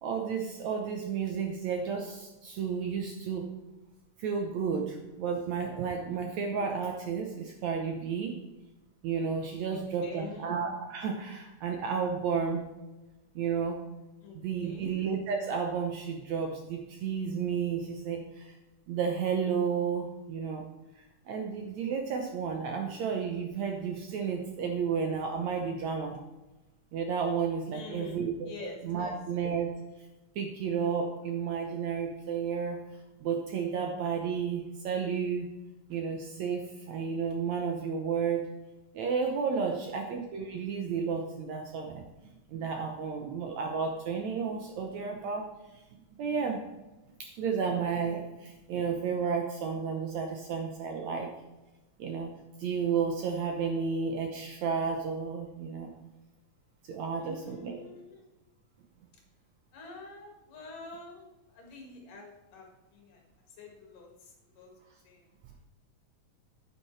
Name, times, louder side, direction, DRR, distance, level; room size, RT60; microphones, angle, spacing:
voice 1, 0.0-3.5 4.2-8.4 9.0-12.7 13.4-13.8 14.3-18.6 18.9-20.7 21.0-26.2 26.9-29.8 30.4-32.8 33.2-35.5 35.9-38.5 38.9-42.0 42.5-45.8 46.2-46.6 47.2-51.3 52.0-52.3 52.6-55.9 56.9-57.8, right 6 dB, 70° right, 3 dB, 1.8 m, -32 dB
voice 2, 9.7-10.5 14.2-15.0 27.7-29.1 39.7-39.9 57.2-58.3 59.7-64.7 65.0-65.3, left 4 dB, 70° left, 0 dB, 3.4 m, -47 dB
9.4 x 9.3 x 3.2 m, 1.1 s
omnidirectional pair, 3.9 m